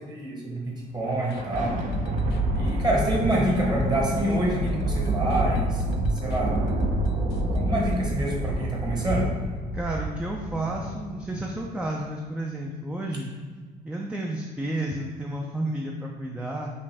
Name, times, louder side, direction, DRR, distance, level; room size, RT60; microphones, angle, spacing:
voice 1, 0.1-1.8 2.5-5.8 6.1-6.5 7.5-9.3, right 1 dB, 25° right, -2 dB, 1.1 m, -27 dB
Thunder, 1.0-11.7, right 2 dB, 50° right, 0.6 m, -28 dB
sound 1, 1.3-9.0 9.3-9.4 9.8-9.9, left 4 dB, 80° left, 0.4 m, -34 dB
voice 2, 9.7-13.3 13.8-16.7, right 1 dB, 5° right, 0 dB, 0.4 m, -31 dB
5.4 x 2.5 x 3.4 m, 1.4 s
cardioid pair, 110°, 17 cm